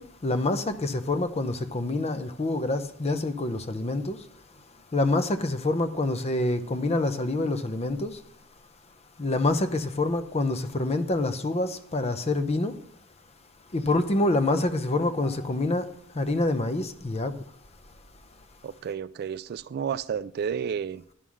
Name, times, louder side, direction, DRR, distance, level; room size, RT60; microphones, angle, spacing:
voice 1, 0.0-4.2 4.9-8.2 9.2-12.7 13.7-15.8 16.1-17.3, left 2 dB, 30° left, 0.7 m, -26 dB
voice 2, 18.6-21.1, right 7 dB, 50° right, 0.3 m, -31 dB
10.0 x 5.5 x 6.2 m
head